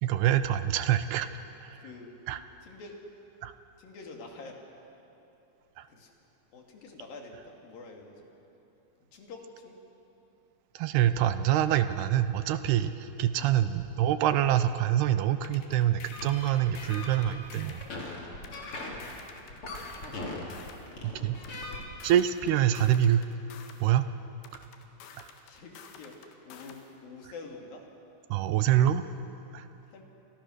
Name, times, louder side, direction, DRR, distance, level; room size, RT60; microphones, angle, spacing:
voice 1, 0.0-1.3 1.6-1.8 2.3-2.4 3.4-3.5 5.8-5.9 10.8-17.8 21.0-21.4 22.0-23.2 23.8-24.1 25.2-25.3 28.3-29.0 29.5-29.7, right 11 dB, 80° right, 11 dB, 2.6 m, -25 dB
voice 2, 1.8-2.1 2.6-2.9 3.8-4.6 5.9-6.1 6.5-8.3 9.1-9.8 13.4-13.5 25.5-26.2 26.5-27.8 29.9-30.0, left 3 dB, 55° left, 1 dB, 4.0 m, -47 dB
sound 1, 15.4-17.9 18.4-20.9 21.4-23.9 24.4-26.9, left 6 dB, 75° left, 3.7 m, -50 dB
sound 2, 16.0-21.9, left 2 dB, 30° left, 4.0 m, -40 dB
29.5 x 25.5 x 6.5 m, 3.0 s
omnidirectional pair, 5.1 m